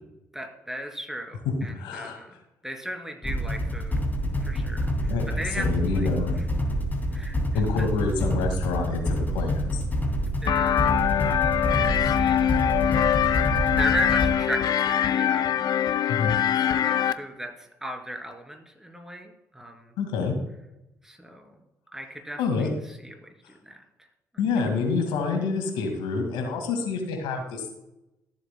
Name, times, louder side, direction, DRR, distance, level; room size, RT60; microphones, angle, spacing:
voice 1, 0.3-2.4 2.6-4.0 4.4-5.7 5.9-6.1 7.1-7.9 10.4-12.5 13.8-15.5 16.5-19.9 21.0-21.6 21.9-22.7 23.0-23.8, equal, 5° right, 3 dB, 2.9 m, -36 dB
voice 2, 1.7-2.2 5.0-6.4 7.5-9.8 16.1-16.4 20.0-20.3 22.4-22.7 24.4-27.7, left 4 dB, 75° left, 4 dB, 2.0 m, -27 dB
sound 1, 3.2-14.3, equal, 20° left, 2.5 m, -27 dB
sound 2, 10.5-17.1, left 10 dB, 55° left, 0.5 m, -23 dB
15.0 x 7.5 x 2.2 m, 0.89 s
hypercardioid pair, 50°, 8 cm